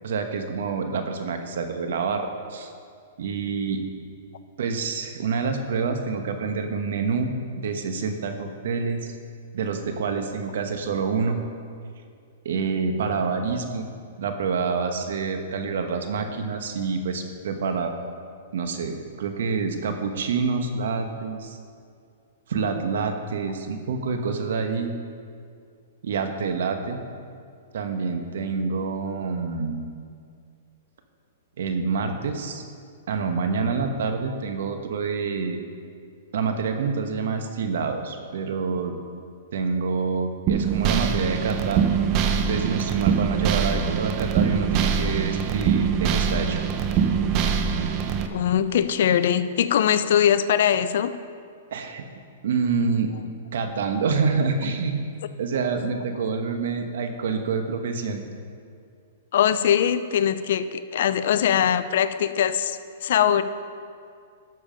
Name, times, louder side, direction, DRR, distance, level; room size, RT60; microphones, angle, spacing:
voice 1, 0.0-2.7 3.2-3.8 4.6-7.3 7.6-9.1 9.5-11.4 12.4-13.9 14.2-17.9 18.5-21.6 22.5-24.9 26.0-27.0 27.7-29.8 31.6-32.6 33.1-35.6 36.3-38.9 39.5-41.8 42.4-46.6 51.7-52.0 52.4-53.1 53.5-55.0 55.4-58.2, right 5 dB, 75° right, 6 dB, 1.2 m, -27 dB
sound 1, 40.5-48.3, right 7 dB, 35° right, 0.8 m, -23 dB
voice 2, 48.3-51.1 59.3-63.4, left 9 dB, 65° left, 13 dB, 0.5 m, -21 dB
12.5 x 7.1 x 5.2 m, 2.3 s
hypercardioid pair, 145°, 0 cm